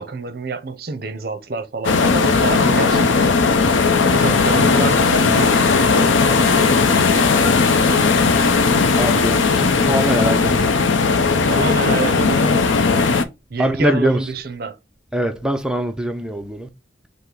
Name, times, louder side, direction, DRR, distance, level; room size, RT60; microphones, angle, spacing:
voice 1, 0.0-3.3 4.1-8.6 11.4-12.7 13.5-14.8, right 3 dB, 50° right, 0.6 m, -28 dB
sound 1, 1.8-13.2, left 4 dB, 80° left, 0.5 m, -16 dB
voice 2, 9.0-10.9 13.6-14.2 15.1-16.7, right 1 dB, 5° right, 0.4 m, -22 dB
5.6 x 2.0 x 3.7 m
head